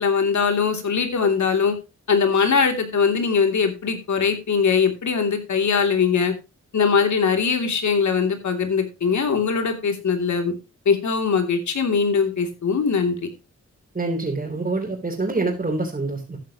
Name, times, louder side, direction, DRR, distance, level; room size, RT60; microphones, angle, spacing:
voice 1, 0.0-1.7 2.1-6.3 6.7-10.5 10.8-13.3, left 5 dB, 75° left, 5 dB, 3.0 m, -21 dB
voice 2, 13.9-16.4, right 3 dB, 30° right, -1 dB, 3.7 m, -26 dB
14.0 x 10.0 x 3.0 m, 0.28 s
cardioid pair, 85°, 29 cm